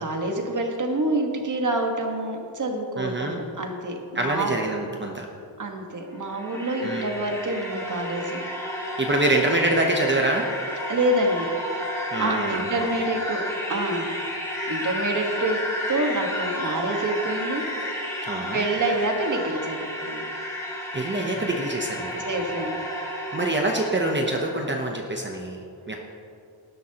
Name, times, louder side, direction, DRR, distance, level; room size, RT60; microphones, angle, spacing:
voice 1, 0.0-4.5 5.6-8.4 10.9-11.5 11.9-13.4 13.7-14.1 14.7-18.2 18.5-20.2 22.2-22.8, right 1 dB, 40° right, 2 dB, 1.5 m, -27 dB
voice 2, 3.0-3.4 4.1-5.3 6.8-7.1 8.8-10.5 12.1-12.6 18.3-18.6 20.9-22.2 23.3-25.6 25.9-26.0, right 2 dB, 25° right, 0 dB, 0.9 m, -25 dB
sound 1, 6.1-24.7, equal, 5° left, 2.1 m, -32 dB
18.5 x 11.5 x 2.9 m, 2.5 s
wide cardioid pair, 155°, 46 cm